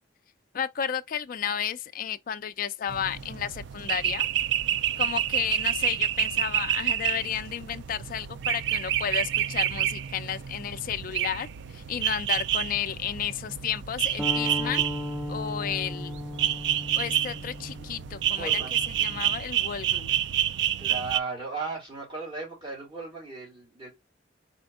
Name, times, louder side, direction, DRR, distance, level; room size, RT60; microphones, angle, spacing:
voice 1, 0.5-4.3 5.0-14.8 15.3-16.2 17.0-18.5 19.0-20.2, left 8 dB, 50° left, 0.4 m, -32 dB
sound 1, 2.9-21.2, right 11 dB, 65° right, 0.3 m, -29 dB
sound 2, 14.2-19.4, left 1 dB, ahead, 0.6 m, -36 dB
voice 2, 18.3-18.8 20.8-23.9, right 4 dB, 25° right, 3.1 m, -36 dB
4.3 x 4.2 x 2.4 m
head